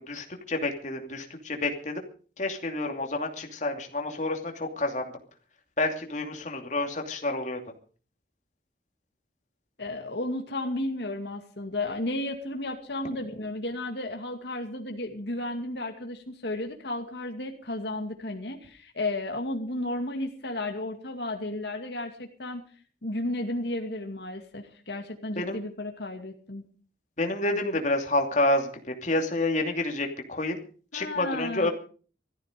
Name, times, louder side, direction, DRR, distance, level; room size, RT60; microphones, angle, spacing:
voice 1, 0.1-2.0 2.4-5.0 5.8-7.6 25.4-25.6 27.2-28.7 29.0-30.6 30.9-31.7, left 2 dB, 40° left, 3 dB, 2.7 m, -28 dB
voice 2, 9.8-22.6 23.0-26.6 30.9-31.7, left 1 dB, 65° left, 3 dB, 2.3 m, -33 dB
18.0 x 14.0 x 5.2 m, 0.42 s
head